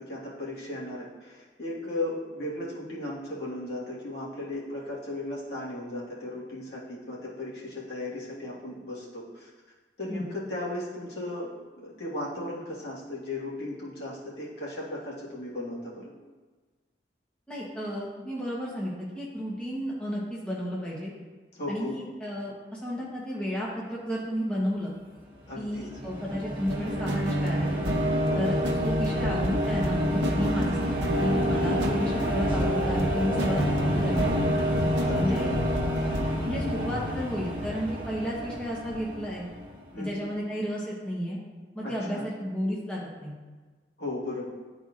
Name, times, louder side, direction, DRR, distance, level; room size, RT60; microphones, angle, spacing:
voice 1, 0.0-9.5 10.0-11.5 11.8-16.1 21.5-22.0 25.5-25.9 28.3-28.5 31.7-32.0 35.0-35.7 39.9-40.3 41.8-42.3 44.0-44.5, left 1 dB, 65° left, -6 dB, 1.6 m, -36 dB
voice 2, 17.5-21.1 21.7-24.9 25.6-27.7 28.3-34.3 35.2-35.5 36.4-39.4 40.0-41.4 41.7-43.4, equal, 5° left, -6 dB, 1.0 m, -32 dB
sound 1, 25.4-39.9, equal, 25° right, 1.0 m, -31 dB
sound 2, 26.7-36.3, equal, 85° right, 0.7 m, -28 dB
11.0 x 4.1 x 2.5 m, 1.3 s
head